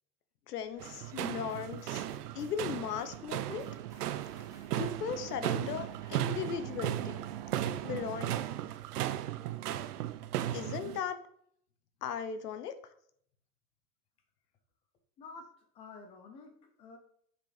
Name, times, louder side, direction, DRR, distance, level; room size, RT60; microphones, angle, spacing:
voice 1, 0.5-2.1 2.3-3.7 4.7-7.2 7.8-8.4 10.5-11.2 12.0-12.7, left 7 dB, 75° left, 11 dB, 1.4 m, -37 dB
sound 1, 0.6-8.4, right 11 dB, 40° right, 0.5 m, -47 dB
sound 2, 0.8-11.0, right 12 dB, 70° right, 0.8 m, -36 dB
sound 3, 1.5-7.3 7.8-7.9, right 2 dB, 5° right, 2.0 m, -61 dB
voice 2, 15.2-17.0, left 4 dB, 10° left, 6 dB, 0.6 m, -50 dB
7.7 x 6.7 x 5.1 m, 0.66 s
supercardioid pair, 165°, 48 cm